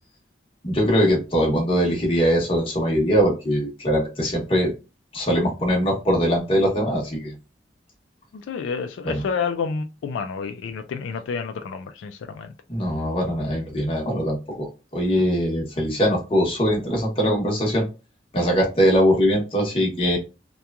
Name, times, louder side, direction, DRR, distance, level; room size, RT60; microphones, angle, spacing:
voice 1, 0.6-4.7 5.1-7.3 9.0-9.2 12.7-17.8 18.3-20.2, equal, 30° left, 0.9 m, -21 dB
voice 2, 8.3-12.5, left 5 dB, 80° left, 0.3 m, -29 dB
2.9 x 2.2 x 2.3 m
head